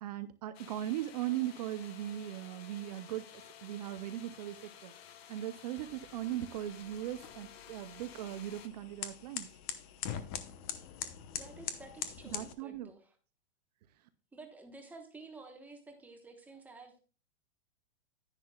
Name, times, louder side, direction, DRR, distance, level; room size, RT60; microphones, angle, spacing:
voice 1, 0.0-4.9 5.3-9.5 12.3-12.9, right 13 dB, 35° right, 11 dB, 0.5 m, -39 dB
sound 1, 0.5-8.7, left 9 dB, 55° left, 1.2 m, -53 dB
sound 2, 5.8-12.5, left 9 dB, 30° left, 0.8 m, -43 dB
voice 2, 11.4-13.2 14.3-17.0, right 3 dB, 5° right, 3 dB, 1.1 m, -52 dB
10.5 x 9.9 x 2.3 m, 0.35 s
supercardioid pair, 160°, 35 cm